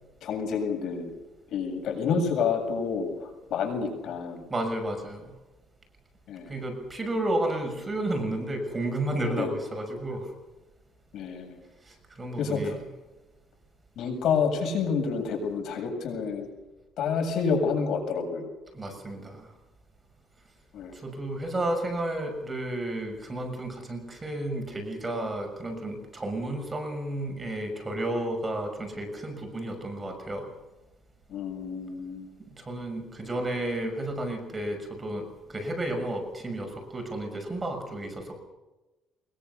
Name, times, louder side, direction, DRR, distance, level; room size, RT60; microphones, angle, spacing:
voice 1, 0.2-1.1 1.5-4.4 6.3-6.5 9.4-9.5 11.1-11.7 12.4-12.7 14.0-16.5 17.0-18.5 20.7-20.9 31.3-32.3, left 5 dB, 65° left, 3 dB, 7.5 m, -29 dB
voice 2, 4.5-5.3 6.5-10.3 11.9-12.8 18.7-19.5 20.9-30.5 32.5-38.4, right 1 dB, 15° right, 3 dB, 6.3 m, -32 dB
23.5 x 22.5 x 7.0 m, 1.1 s
cardioid pair, 145°, 0 cm